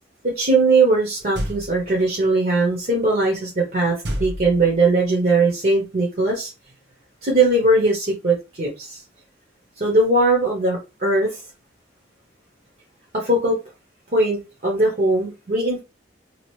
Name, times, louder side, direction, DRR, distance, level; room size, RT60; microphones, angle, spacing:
voice 1, 0.2-3.9 4.2-6.5 7.2-9.0 9.8-11.4 13.1-13.6 14.1-15.8, right 2 dB, 50° right, -2 dB, 0.9 m, -20 dB
sound 1, 1.3-2.0 4.0-5.1, equal, 80° right, 0.8 m, -30 dB
2.9 x 2.5 x 3.1 m, 0.27 s
head